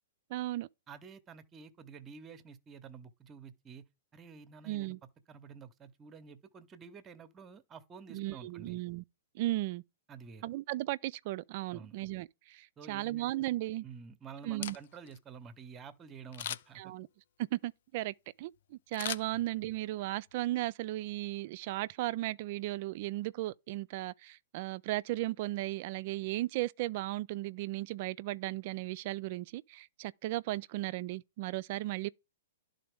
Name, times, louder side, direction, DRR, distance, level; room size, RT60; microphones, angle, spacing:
voice 1, 0.3-0.7 4.7-5.0 8.1-9.0 9.3-9.8 10.4-13.8 14.4-14.8 16.8-17.1 17.5-32.1, right 17 dB, 50° right, 0.3 m, -36 dB
voice 2, 0.9-3.9 4.1-4.9 5.3-8.8 10.1-10.5 11.7-12.0 12.8-13.4 13.8-16.9 19.3-19.4, right 6 dB, 20° right, 0.7 m, -50 dB
Camera, 14.4-15.2 16.3-16.9 18.9-19.9 20.3-20.4, left 11 dB, 60° left, 0.4 m, -40 dB
11.0 x 3.9 x 3.5 m
hypercardioid pair, 125°, 0 cm